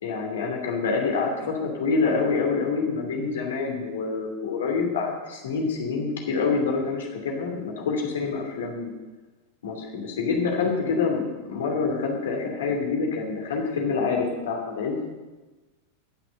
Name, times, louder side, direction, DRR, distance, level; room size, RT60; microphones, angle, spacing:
voice 1, 0.0-8.9 9.6-15.0, left 4 dB, 60° left, 1 dB, 2.6 m, -26 dB
18.0 x 6.0 x 7.8 m, 1.2 s
figure-of-eight pair, 90°, 0 cm